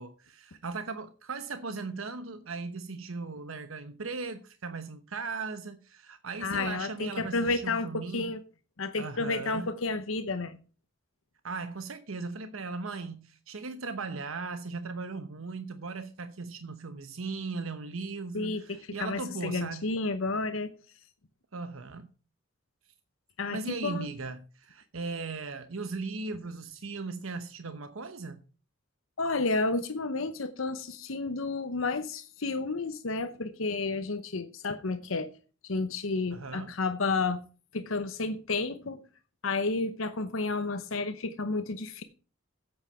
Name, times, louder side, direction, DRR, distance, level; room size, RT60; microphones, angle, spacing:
voice 1, 0.0-8.3 9.0-9.7 11.4-19.9 21.5-22.1 23.5-28.4 36.3-36.7, right 4 dB, 75° right, 0.9 m, -38 dB
voice 2, 6.4-8.4 8.8-10.6 18.3-20.7 23.4-24.1 29.2-35.3 35.7-37.4 37.7-39.0 39.4-42.0, left 3 dB, 75° left, 0.9 m, -31 dB
8.6 x 8.1 x 6.8 m
head